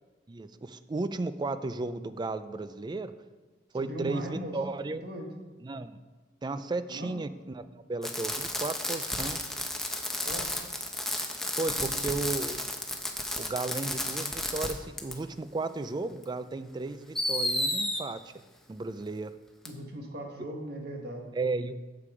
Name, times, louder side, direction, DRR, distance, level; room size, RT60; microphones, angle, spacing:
voice 1, 0.3-3.1 3.7-5.0 5.6-6.0 6.4-9.4 11.6-12.6 13.4-18.2 18.7-19.3 21.3-21.7, right 3 dB, 25° right, 13 dB, 0.4 m, -34 dB
voice 2, 3.7-4.5 4.9-5.3 6.9-7.1 10.2-10.5 11.7-12.1 19.6-21.3, right 1 dB, 60° right, 2 dB, 1.5 m, -39 dB
Fireworks, 8.0-14.7 15.0-15.1 16.2-16.3 17.1-18.0 19.6-19.7, left 1 dB, ahead, 0.7 m, -32 dB
8.3 x 6.8 x 4.9 m, 1.3 s
head